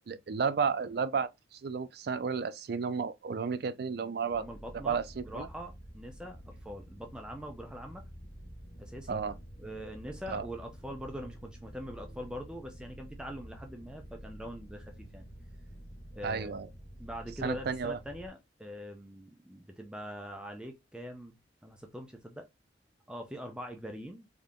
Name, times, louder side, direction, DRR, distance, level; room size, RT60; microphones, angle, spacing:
voice 1, 0.1-4.5 4.8-5.5 9.1-9.3 10.3-10.5 16.2-16.7 17.4-18.0, right 5 dB, 60° right, 0.4 m, -32 dB
sound 1, 4.3-18.3, equal, 55° left, 1.0 m, -49 dB
voice 2, 4.4-8.0 8.8-9.2 9.6-15.2 16.1-16.6 17.0-21.4 21.6-22.5 23.1-24.3, equal, 5° right, 0.5 m, -43 dB
3.6 x 2.8 x 3.6 m
head